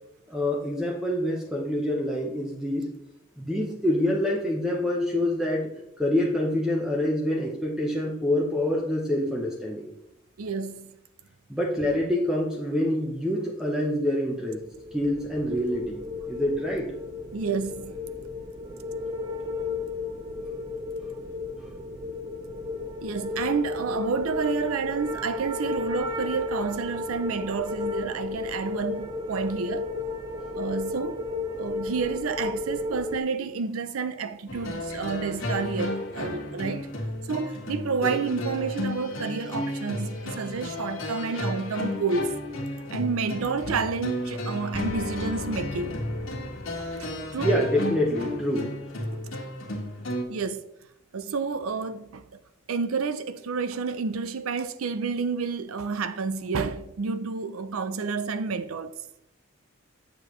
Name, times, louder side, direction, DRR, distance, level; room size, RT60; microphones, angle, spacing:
voice 1, 0.3-2.9 3.4-5.7 6.0-9.9 11.5-14.6 14.9-16.9 38.0-38.2 47.4-48.7, left 1 dB, 5° right, 0.8 m, -26 dB
voice 2, 10.4-11.0 17.3-18.0 23.0-29.9 30.5-31.2 31.6-36.9 37.3-42.4 42.9-46.0 46.8-47.5 49.1-49.3 50.3-50.6 51.1-52.2 52.7-58.9, right 4 dB, 85° right, 0.5 m, -30 dB
sound 1, 14.6-33.2, left 3 dB, 20° right, 0.4 m, -34 dB
sound 2, 34.5-50.2, left 1 dB, 75° left, 1.6 m, -33 dB
8.0 x 6.8 x 3.1 m
head